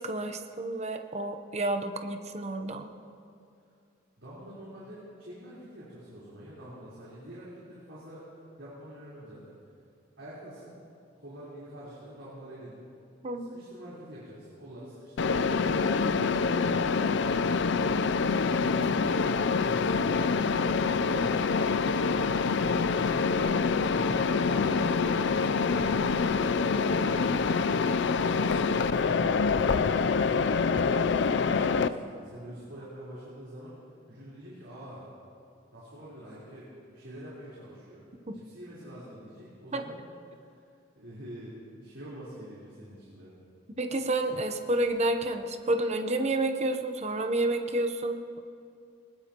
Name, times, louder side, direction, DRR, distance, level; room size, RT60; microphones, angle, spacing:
voice 1, 0.0-2.9 13.2-13.6 21.1-21.4 38.3-38.4 39.7-39.8 43.8-48.4, right 2 dB, 35° right, 6 dB, 0.8 m, -30 dB
voice 2, 4.2-8.3 8.6-9.6 10.2-10.7 11.1-12.9 13.4-17.8 18.3-20.4 22.4-26.0 26.5-29.8 30.4-33.8 34.1-35.1 35.7-38.1 38.3-40.0 40.3-40.6 40.9-43.3, right 1 dB, 75° right, -9 dB, 4.1 m, -45 dB
Mechanisms, 15.2-31.9, left 5 dB, 65° left, 0.5 m, -26 dB
21.5 x 20.0 x 3.0 m, 2.4 s
head